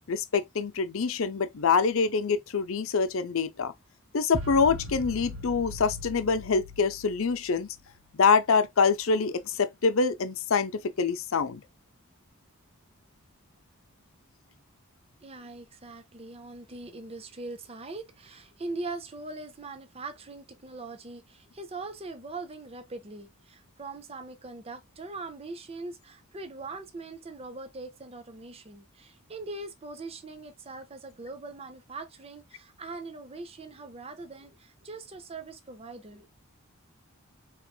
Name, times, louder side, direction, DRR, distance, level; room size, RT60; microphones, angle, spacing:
voice 1, 0.1-3.7 4.1-7.8 8.1-11.6, left 5 dB, 65° left, 0.6 m, -25 dB
sound 1, 4.3-7.8, equal, 75° right, 0.8 m, -40 dB
voice 2, 15.2-36.3, right 3 dB, 25° right, 0.6 m, -41 dB
4.6 x 3.1 x 2.3 m
head